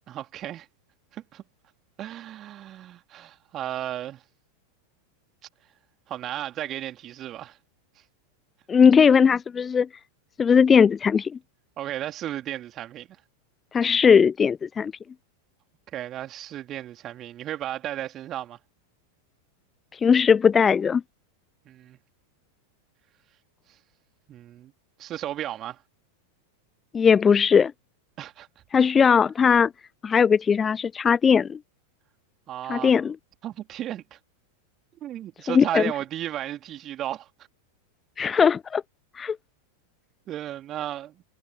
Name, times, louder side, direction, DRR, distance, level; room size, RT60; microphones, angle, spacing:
voice 1, 0.1-0.7 1.1-1.4 2.0-4.2 6.1-7.6 11.8-13.1 15.9-18.6 21.6-22.0 24.3-24.7 25.0-25.8 28.2-28.5 32.5-32.9 33.4-34.2 35.0-37.3 40.3-41.2, right 12 dB, 30° right, 3.0 m, -34 dB
voice 2, 8.7-9.9 10.4-11.3 13.7-14.9 19.9-21.0 26.9-27.7 28.7-29.7 30.0-31.6 32.7-33.2 35.5-35.9 38.2-38.8 39.1-39.4, left 6 dB, 20° left, 0.4 m, -19 dB
figure-of-eight pair, 90°, 0 cm